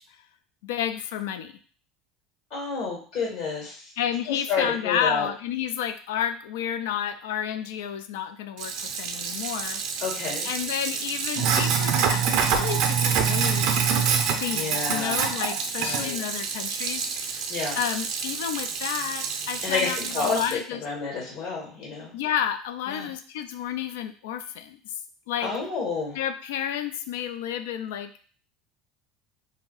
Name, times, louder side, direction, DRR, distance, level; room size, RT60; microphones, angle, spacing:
voice 1, 0.6-1.6 4.0-10.0 10.4-14.1 14.4-17.4 17.8-20.8 22.1-24.9 25.3-25.5 26.1-28.3, left 9 dB, 85° left, 10 dB, 0.3 m, -31 dB
voice 2, 2.5-3.9 4.3-5.3 10.0-10.5 14.5-15.2 15.8-16.2 17.5-17.8 19.6-22.1 22.9-23.1 25.4-26.2, left 4 dB, 70° left, -3 dB, 1.5 m, -30 dB
Sink (filling or washing), 8.6-20.5, right 7 dB, 65° right, 0.5 m, -27 dB
2.6 x 2.0 x 3.8 m, 0.42 s
supercardioid pair, 110°, 0 cm